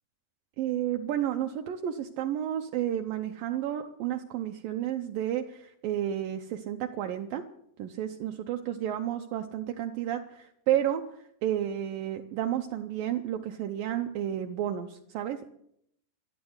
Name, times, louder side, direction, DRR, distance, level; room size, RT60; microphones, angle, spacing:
voice 1, 0.6-7.4 7.8-11.0 11.4-15.4, right 11 dB, 75° right, 5 dB, 2.3 m, -31 dB
13.0 x 12.5 x 8.0 m, 0.74 s
omnidirectional pair, 4.4 m